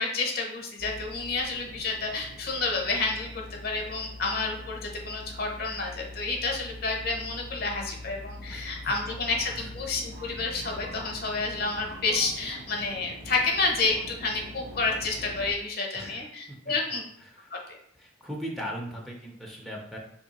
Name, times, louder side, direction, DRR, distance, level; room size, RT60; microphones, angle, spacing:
voice 1, 0.0-17.0 17.5-17.6, left 3 dB, 55° left, 1 dB, 0.8 m, -30 dB
sound 1, 0.8-15.5, left 1 dB, 60° right, 0.7 m, -43 dB
voice 2, 18.0-20.0, equal, ahead, -3 dB, 0.5 m, -38 dB
3.2 x 2.7 x 4.1 m, 0.70 s
head